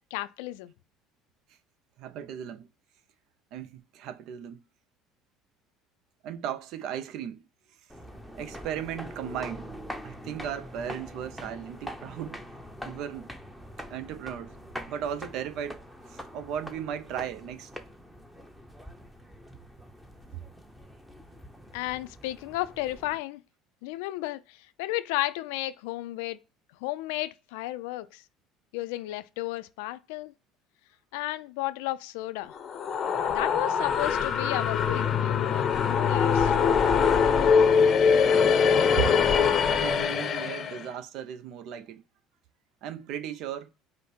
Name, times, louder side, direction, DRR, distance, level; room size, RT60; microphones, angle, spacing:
voice 1, 0.1-0.7 21.7-23.4 23.8-26.4 26.8-28.2 28.7-30.3 31.1-32.5 33.3-36.8, left 16 dB, 85° left, 0.4 m, -33 dB
voice 2, 2.0-2.7 3.5-4.6 6.2-7.4 8.3-9.7 10.0-12.4 12.8-13.3 13.9-14.6 14.9-15.8 16.1-17.7 39.0-42.0 42.8-43.7, right 9 dB, 65° right, 0.5 m, -36 dB
sound 1, 7.9-23.2, equal, 5° right, 0.7 m, -44 dB
sound 2, 32.5-40.8, left 6 dB, 45° left, 0.6 m, -23 dB
5.0 x 2.1 x 4.2 m
supercardioid pair, 100°, 0 cm